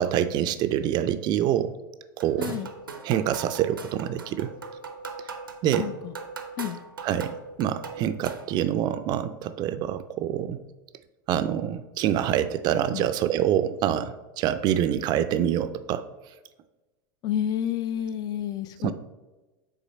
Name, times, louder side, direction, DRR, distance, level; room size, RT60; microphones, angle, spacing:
voice 1, 0.0-1.7 2.2-2.6 3.0-4.5 5.6-5.9 7.0-10.6 11.3-16.0 18.8-18.9, right 10 dB, 40° right, 12 dB, 0.4 m, -26 dB
sound 1, 2.2-8.6, right 4 dB, 90° right, 0.6 m, -40 dB
voice 2, 2.4-2.7 5.8-6.1 6.6-6.8 12.7-13.1 17.2-18.9, left 10 dB, 35° left, 13 dB, 0.4 m, -30 dB
5.9 x 3.8 x 4.1 m, 1.1 s
hypercardioid pair, 90°, 11 cm